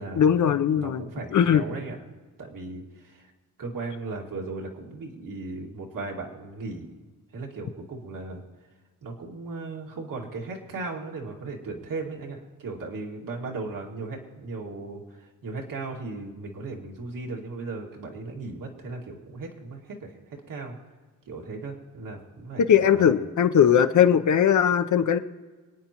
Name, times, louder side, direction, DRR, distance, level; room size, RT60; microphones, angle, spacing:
voice 1, 0.2-1.0 1.3-1.6 22.6-25.2, left 8 dB, 65° left, 9 dB, 0.8 m, -19 dB
voice 2, 0.7-2.0 2.4-3.3 3.6-6.9 7.3-8.4 9.0-20.8 21.3-23.1, right 3 dB, 75° right, 0 dB, 2.2 m, -37 dB
26.5 x 9.5 x 3.0 m, 1.4 s
wide cardioid pair, 145°, 33 cm